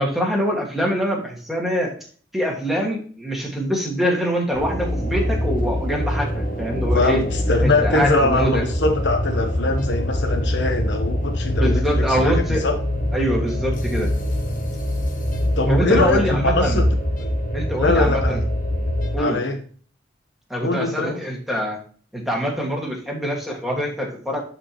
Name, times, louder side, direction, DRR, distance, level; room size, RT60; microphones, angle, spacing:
voice 1, 0.0-1.9 2.3-7.2 7.6-8.6 11.6-12.6 13.1-14.1 15.7-16.8 17.5-18.4 19.1-19.4 20.5-21.8 22.1-24.4, equal, ahead, -2 dB, 1.9 m, -24 dB
sound 1, 4.5-19.2, left 1 dB, 50° left, 1.1 m, -23 dB
voice 2, 6.9-12.7 15.6-16.8 17.2-17.3 17.8-18.4 19.2-19.6 20.6-21.2, left 2 dB, 80° left, 3 dB, 1.0 m, -22 dB
10.5 x 4.4 x 3.1 m, 0.44 s
head